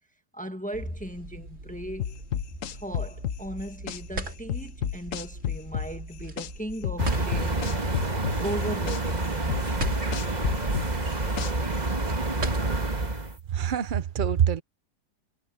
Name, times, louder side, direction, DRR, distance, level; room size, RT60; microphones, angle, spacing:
voice 1, 0.3-2.2 2.7-7.8 8.4-9.7, equal, 5° left, 1.2 m, -37 dB
sound 1, 0.7-13.0, right 2 dB, 45° right, 3.2 m, -41 dB
sound 2, 2.0-4.0 4.5-6.5 6.8-9.0 9.5-11.8, left 10 dB, 60° left, 1.0 m, -30 dB
sound 3, 7.0-13.4, right 2 dB, 25° right, 1.7 m, -28 dB
voice 2, 13.5-14.6, right 9 dB, 75° right, 0.4 m, -25 dB
omnidirectional pair, 1.8 m